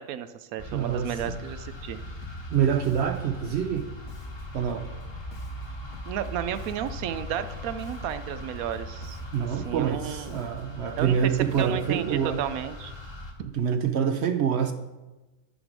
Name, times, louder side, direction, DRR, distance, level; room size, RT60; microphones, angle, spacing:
voice 1, 0.0-2.0 6.0-10.4 10.9-11.3 11.6-12.9, right 10 dB, 90° right, 1.0 m, -33 dB
sound 1, 0.6-13.3, equal, 20° left, 1.1 m, -40 dB
voice 2, 0.7-1.4 2.5-3.9 4.5-4.9 9.3-12.4 13.5-14.7, right 8 dB, 65° right, 0.7 m, -26 dB
Bass guitar, 2.2-12.1, left 2 dB, 90° left, 1.6 m, -49 dB
8.9 x 5.1 x 6.1 m
omnidirectional pair, 1.5 m